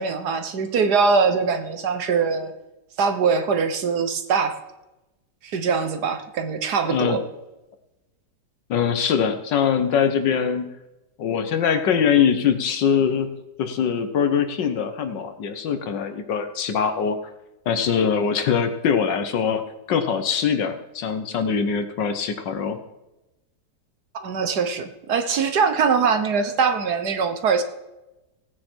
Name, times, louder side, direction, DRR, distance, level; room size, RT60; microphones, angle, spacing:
voice 1, 0.0-2.5 3.0-4.6 5.4-7.2 24.2-27.6, right 5 dB, 65° right, 8 dB, 1.6 m, -22 dB
voice 2, 6.8-7.2 8.7-10.7 11.2-17.2 17.7-22.8, left 7 dB, 80° left, 8 dB, 1.7 m, -22 dB
17.0 x 9.3 x 4.5 m, 0.99 s
omnidirectional pair, 1.9 m